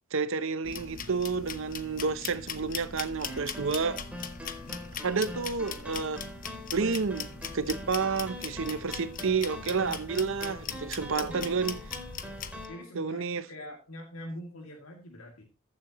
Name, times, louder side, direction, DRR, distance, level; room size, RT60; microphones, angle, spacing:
voice 1, 0.1-4.0 5.0-6.2 6.7-11.7 12.9-13.5, right 5 dB, 65° right, 0.7 m, -30 dB
sound 1, 0.6-12.7, left 6 dB, 40° left, 1.0 m, -40 dB
sound 2, 3.2-12.8, equal, 5° right, 2.8 m, -44 dB
voice 2, 11.1-11.6 12.7-15.4, equal, 80° left, 2.4 m, -43 dB
14.5 x 7.5 x 3.0 m
head